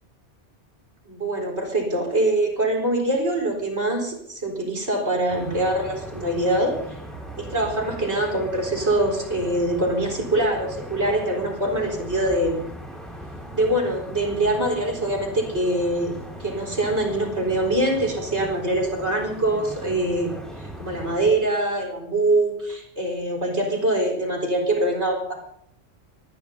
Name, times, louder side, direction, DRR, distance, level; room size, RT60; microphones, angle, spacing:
voice 1, 1.0-7.0 7.4-12.6 13.5-16.1 16.4-25.3, right 1 dB, 65° right, 1 dB, 4.5 m, -24 dB
sound 1, 5.3-21.3, right 1 dB, ahead, 5.5 m, -39 dB
25.0 x 18.5 x 2.8 m, 0.71 s
omnidirectional pair, 1.2 m